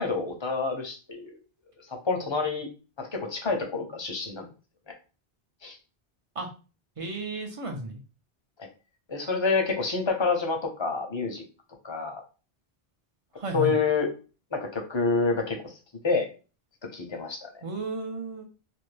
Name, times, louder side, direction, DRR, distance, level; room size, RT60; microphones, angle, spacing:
voice 1, 0.0-1.3 1.9-2.7 3.0-4.5 5.6-5.8 8.6-8.7 9.1-11.4 11.8-12.2 13.5-14.1 14.5-15.8 16.0-16.3 16.8-17.5, left 4 dB, 35° left, 3 dB, 0.6 m, -28 dB
voice 2, 7.0-8.0 13.3-13.8 17.6-18.4, right 2 dB, 40° right, 4 dB, 0.6 m, -33 dB
2.6 x 2.6 x 3.2 m, 0.34 s
omnidirectional pair, 1.0 m